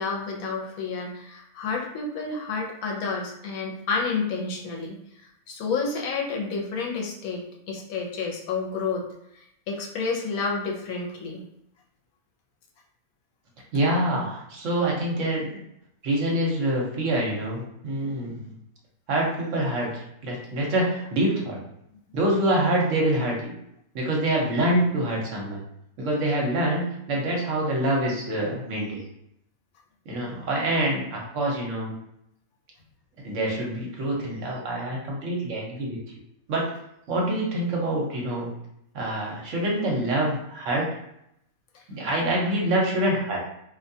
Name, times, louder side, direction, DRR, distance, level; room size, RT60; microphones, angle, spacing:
voice 1, 0.0-9.1 9.3-11.5 41.7-41.8, left 4 dB, 75° left, -1 dB, 1.0 m, -30 dB
voice 2, 13.7-15.6 16.0-18.5 19.1-19.9 20.2-21.6 22.1-23.5 23.9-25.6 26.0-29.0 30.1-31.9 33.2-36.0 36.5-36.7 37.1-38.5 38.9-40.8 41.9-43.5, right 1 dB, 65° right, -2 dB, 1.0 m, -26 dB
2.5 x 2.2 x 2.6 m, 0.77 s
omnidirectional pair, 1.5 m